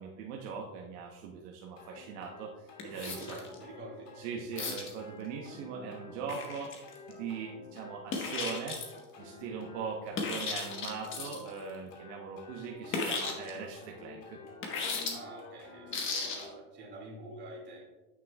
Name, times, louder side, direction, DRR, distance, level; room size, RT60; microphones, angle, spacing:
voice 1, 0.0-3.4 4.2-6.7 7.1-8.8 9.2-14.4, right 5 dB, 60° right, 0 dB, 0.9 m, -40 dB
sound 1, 1.8-16.5, left 3 dB, 90° left, 2.3 m, -51 dB
sound 2, 2.8-3.6 4.6-4.9 6.3-7.1 8.1-9.0 10.1-11.5 12.9-13.5 14.6-15.1 15.9-16.5, left 4 dB, 30° left, 1.2 m, -35 dB
voice 2, 3.0-4.1 9.4-9.6 15.1-17.8, right 1 dB, 30° right, -2 dB, 2.1 m, -47 dB
9.7 x 6.0 x 2.3 m, 1.1 s
supercardioid pair, 140°, 38 cm